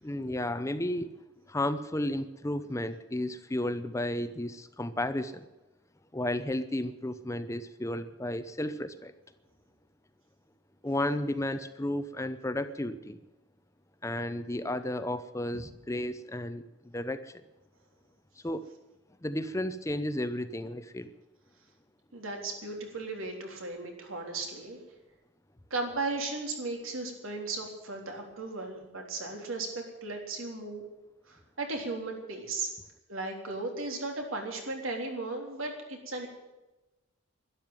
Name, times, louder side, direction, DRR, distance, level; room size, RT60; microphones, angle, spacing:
voice 1, 0.0-1.1 1.5-5.5 6.1-9.1 10.8-13.2 14.0-16.6 16.9-17.3 18.4-18.7 19.2-21.1, left 1 dB, 15° left, 11 dB, 0.6 m, -33 dB
voice 2, 22.1-24.8 25.7-30.8 31.3-32.7 33.1-36.3, right 3 dB, 85° right, 2 dB, 3.6 m, -36 dB
12.0 x 11.5 x 9.1 m, 1.0 s
head